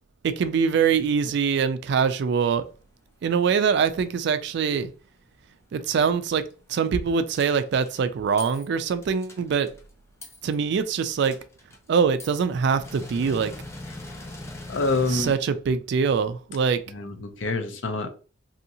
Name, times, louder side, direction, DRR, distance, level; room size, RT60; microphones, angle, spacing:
voice 1, 0.2-2.7 3.2-4.9 5.7-6.4 6.7-9.7 10.4-11.4 11.9-13.5 15.1-16.8, right 6 dB, 60° right, 0.3 m, -23 dB
sound 1, 7.3-8.0 8.4-8.7 9.0-9.8 10.2-10.6 10.8-10.9 11.2-12.4 12.7-15.3, left 2 dB, 15° left, 0.4 m, -40 dB
voice 2, 14.7-15.3 16.9-18.1, left 3 dB, 75° left, 0.6 m, -26 dB
2.7 x 2.7 x 2.6 m
head